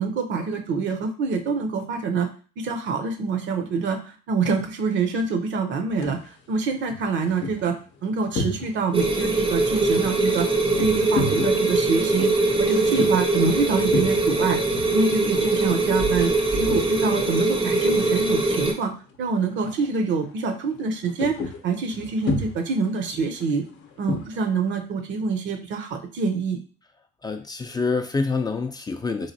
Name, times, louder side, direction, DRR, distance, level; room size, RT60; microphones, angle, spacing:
voice 1, 0.0-2.3 2.6-6.2 6.5-7.7 8.0-10.5 10.8-12.3 12.6-14.6 14.9-16.3 16.6-18.9 19.2-21.3 21.6-23.6 24.0-26.6, right 4 dB, 65° right, 5 dB, 0.7 m, -25 dB
sound 1, 5.9-6.3 6.8-9.0 9.3-17.3 17.5-18.6 18.9-19.2 19.5-20.0 20.3-24.5, left 2 dB, 65° left, 0.6 m, -33 dB
sound 2, 8.9-18.7, right 2 dB, 25° right, 0.6 m, -22 dB
voice 2, 27.2-29.3, left 4 dB, 20° left, 7 dB, 0.3 m, -26 dB
3.1 x 2.5 x 2.7 m, 0.38 s
supercardioid pair, 80°, 20 cm